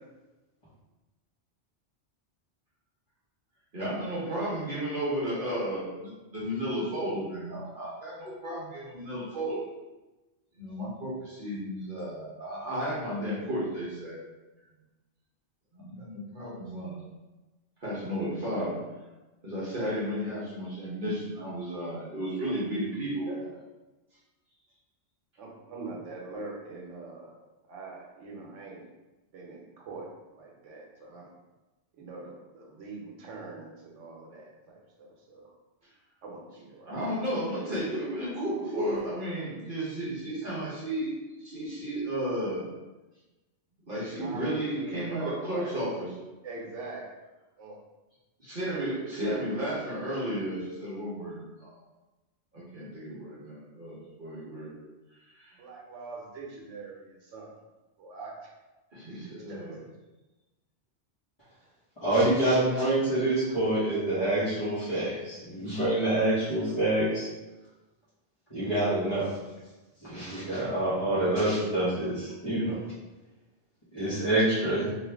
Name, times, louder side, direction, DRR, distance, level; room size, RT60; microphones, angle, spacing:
voice 1, 3.7-9.7 10.6-14.2 15.7-17.0 17.8-18.8 19.4-23.3 36.9-41.1 41.4-42.6 43.9-46.1 48.5-51.8 52.5-54.7 55.3-55.6 58.9-59.8, equal, 50° right, -8 dB, 1.0 m, -33 dB
voice 2, 25.4-27.4 27.7-28.9 29.3-30.1 30.3-31.3 32.0-35.5 36.2-36.9 43.9-45.7 46.4-47.0 47.6-47.8 55.6-57.5 58.0-58.5 59.1-59.8, right 3 dB, 85° right, -2 dB, 1.1 m, -43 dB
voice 3, 62.0-67.3 68.5-69.3 70.0-72.8 73.9-74.9, right 1 dB, 25° left, -13 dB, 1.0 m, -26 dB
3.0 x 2.5 x 3.3 m, 1.1 s
omnidirectional pair, 1.2 m